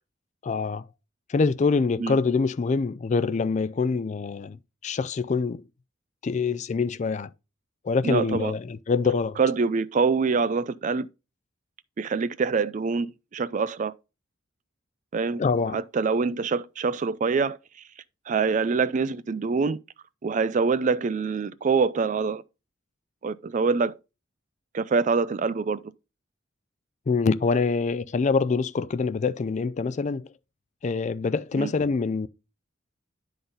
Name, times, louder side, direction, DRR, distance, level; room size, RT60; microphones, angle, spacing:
voice 1, 0.4-0.8 1.3-4.6 4.8-5.6 6.2-7.3 7.8-9.4 15.4-15.8 27.1-30.2 30.8-32.3, left 4 dB, 35° left, 0.3 m, -25 dB
voice 2, 8.0-8.5 9.4-11.1 12.0-13.9 15.1-15.4 15.7-17.6 18.3-19.8 20.2-22.4 23.2-23.9 24.7-25.8 31.5-31.7, right 4 dB, 40° right, 0.4 m, -25 dB
11.0 x 4.0 x 4.0 m
head